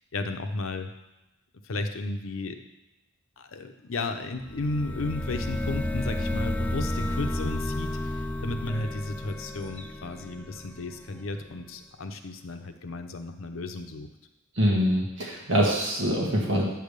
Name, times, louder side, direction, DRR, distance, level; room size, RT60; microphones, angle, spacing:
voice 1, 0.1-0.9 1.6-2.6 3.4-14.1, left 2 dB, 90° left, 7 dB, 0.7 m, -34 dB
sound 1, 4.4-11.1, left 1 dB, 5° left, 0.4 m, -32 dB
voice 2, 14.5-16.6, equal, 70° right, -2 dB, 1.7 m, -24 dB
9.1 x 3.5 x 6.6 m, 1.0 s
head